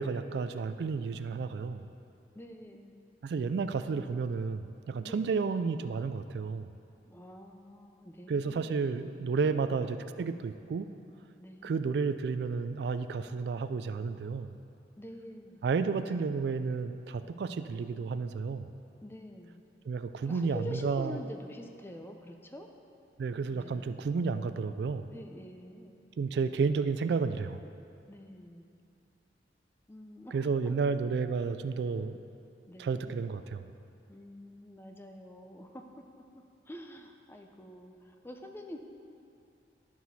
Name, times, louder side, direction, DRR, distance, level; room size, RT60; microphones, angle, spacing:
voice 1, 0.0-1.9 3.2-6.7 8.3-10.9 11.6-14.5 15.6-18.7 19.9-21.2 23.2-25.1 26.2-27.6 30.3-32.2 32.8-33.7, right 5 dB, 70° right, 11 dB, 0.3 m, -31 dB
voice 2, 2.3-2.9 5.0-5.5 7.0-8.7 9.3-9.6 11.4-11.8 15.0-15.6 15.9-16.0 17.1-17.4 19.0-19.6 20.3-22.7 23.5-23.9 25.1-25.9 28.1-28.7 29.9-30.9 32.7-33.3 34.1-38.8, equal, 15° left, 4 dB, 0.5 m, -47 dB
11.5 x 6.1 x 4.1 m, 2.5 s
head